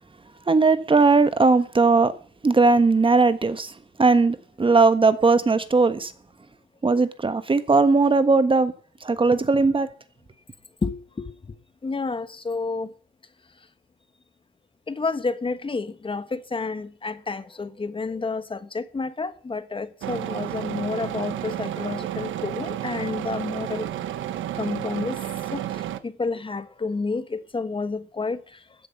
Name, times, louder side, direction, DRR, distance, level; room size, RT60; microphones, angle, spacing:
voice 1, 0.5-2.1 2.4-3.7 4.0-6.1 6.8-8.7 9.0-9.9, right 3 dB, 25° right, 1.4 m, -18 dB
voice 2, 10.8-11.3 11.8-12.9 14.9-23.9 24.5-25.2 25.5-28.6, left 4 dB, 25° left, 1.3 m, -30 dB
sound 1, 20.0-26.0, right 12 dB, 75° right, 1.2 m, -31 dB
15.0 x 8.6 x 7.1 m
cardioid pair, 90°, 20 cm